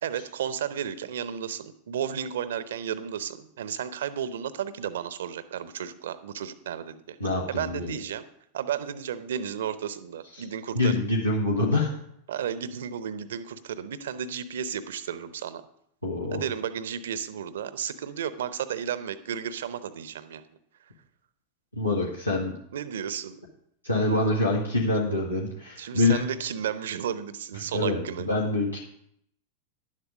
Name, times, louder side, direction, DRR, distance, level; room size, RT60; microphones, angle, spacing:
voice 1, 0.0-7.2 7.5-8.2 8.5-10.9 12.3-15.6 16.3-20.4 22.7-23.4 23.9-24.1 25.8-28.3, right 8 dB, 60° right, 15 dB, 0.7 m, -33 dB
voice 2, 7.2-7.9 10.7-11.9 16.0-16.4 21.7-22.5 23.8-26.2 27.7-28.8, left 2 dB, 85° left, -4 dB, 1.5 m, -25 dB
11.0 x 7.5 x 4.9 m, 0.71 s
figure-of-eight pair, 90°, 0 cm